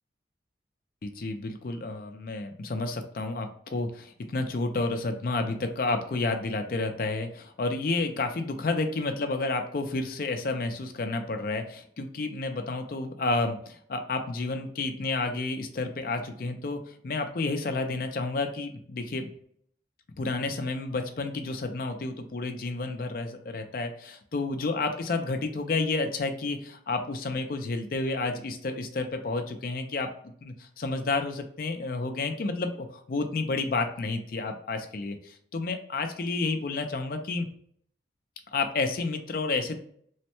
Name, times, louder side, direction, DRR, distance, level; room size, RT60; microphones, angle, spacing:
voice 1, 1.0-19.3 20.2-30.1 30.4-37.5 38.5-39.8, left 3 dB, 50° left, 6 dB, 0.4 m, -30 dB
3.1 x 2.1 x 2.9 m, 0.62 s
head